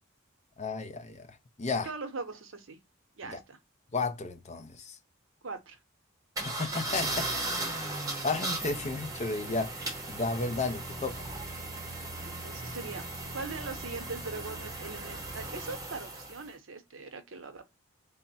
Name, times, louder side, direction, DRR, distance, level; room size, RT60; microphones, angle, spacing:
voice 1, 0.6-1.9 3.2-3.4 3.9-5.0 6.4-7.3 8.2-11.3, left 3 dB, 35° left, 0.5 m, -33 dB
voice 2, 1.8-2.8 3.2-3.6 5.4-5.8 12.2-13.0 13.3-17.6, right 4 dB, 65° right, 0.8 m, -41 dB
sound 1, 6.4-16.5, right 2 dB, 15° right, 0.8 m, -37 dB
3.4 x 2.1 x 4.0 m
head